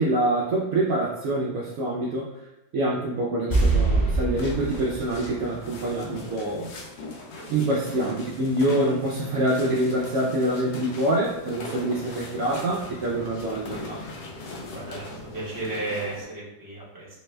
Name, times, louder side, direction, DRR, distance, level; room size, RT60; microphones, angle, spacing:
voice 1, 0.0-2.3 2.7-6.7 7.5-14.0, right 1 dB, 85° right, -5 dB, 0.7 m, -25 dB
sound 1, 3.5-6.7 7.0-7.1, right 3 dB, 30° left, 0.9 m, -25 dB
sound 2, 4.3-16.2, left 2 dB, 80° left, 1.3 m, -40 dB
voice 2, 14.7-15.0 15.3-17.1, right 2 dB, 20° right, -8 dB, 0.6 m, -33 dB
3.3 x 2.1 x 3.1 m, 0.94 s
omnidirectional pair, 2.0 m